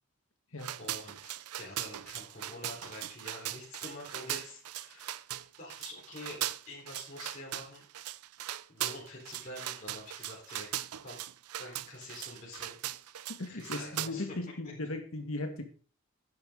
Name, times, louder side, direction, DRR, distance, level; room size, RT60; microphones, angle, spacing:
sound 1, 0.6-14.1, right 13 dB, 90° right, 0.5 m, -39 dB
voice 1, 0.8-5.3 5.6-7.8 8.7-11.2 11.6-12.8 13.1-14.2, left 2 dB, 35° left, -5 dB, 4.4 m, -47 dB
voice 2, 13.3-15.6, left 2 dB, 65° left, 6 dB, 1.8 m, -37 dB
12.5 x 9.6 x 3.9 m, 0.38 s
head